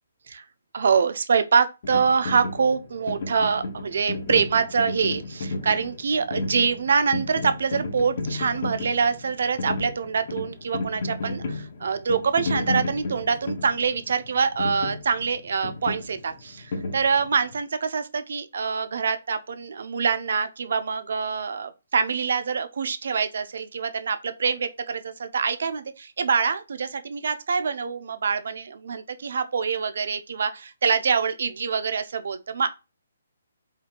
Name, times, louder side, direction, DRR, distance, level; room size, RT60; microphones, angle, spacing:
voice 1, 0.7-32.7, right 5 dB, 60° right, 0.3 m, -25 dB
sound 1, 1.8-17.6, left 2 dB, 40° left, 0.5 m, -33 dB
2.4 x 2.2 x 2.8 m
hypercardioid pair, 170°, 0 cm